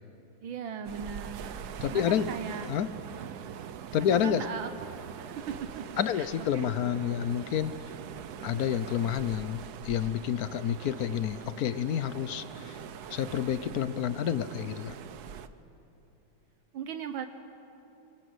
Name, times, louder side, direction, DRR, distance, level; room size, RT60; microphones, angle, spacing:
voice 1, 0.4-2.7 3.1-3.3 4.0-6.3 6.5-6.7 16.7-17.3, right 7 dB, 75° right, 8 dB, 1.7 m, -39 dB
sound 1, 0.8-15.5, right 8 dB, 60° right, 1.2 m, -43 dB
voice 2, 1.8-2.3 2.7-2.9 3.9-4.4 6.0-7.7 8.4-12.8 13.1-14.9, left 9 dB, 65° left, 14 dB, 1.0 m, -29 dB
24.0 x 24.0 x 7.9 m, 2.9 s
omnidirectional pair, 2.2 m